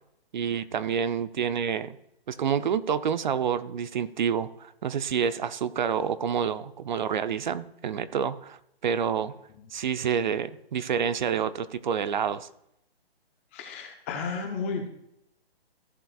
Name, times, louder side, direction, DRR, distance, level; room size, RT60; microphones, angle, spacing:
voice 1, 0.3-2.0 2.3-9.3 9.7-12.5, right 7 dB, 45° right, 13 dB, 0.6 m, -28 dB
voice 2, 13.5-14.9, left 4 dB, 15° left, 5 dB, 0.5 m, -33 dB
15.0 x 7.6 x 2.4 m, 0.78 s
hypercardioid pair, 145°, 31 cm